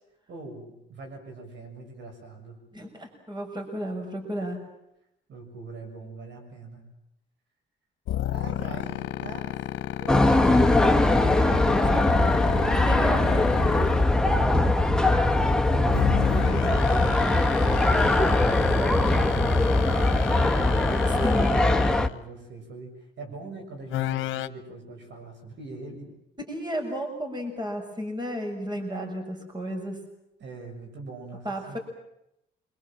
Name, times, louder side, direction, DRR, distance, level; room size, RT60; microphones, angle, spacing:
voice 1, 0.3-2.6 5.3-6.8 8.3-9.5 10.0-11.0 15.4-16.2 16.9-20.5 21.2-26.1 30.4-31.8, right 3 dB, 65° right, 4 dB, 7.2 m, -42 dB
voice 2, 2.7-4.6 12.4-12.6 12.8-13.7 14.0-14.1 21.1-21.9 26.5-30.0 31.4-31.8, equal, 20° right, 4 dB, 6.9 m, -33 dB
sound 1, 8.1-14.2 15.9-22.2 23.9-24.5, left 14 dB, 80° left, 1.1 m, -31 dB
sound 2, 10.1-22.1, left 2 dB, 5° left, 1.2 m, -21 dB
27.5 x 23.5 x 7.6 m, 0.84 s
cardioid pair, 90°, 20 cm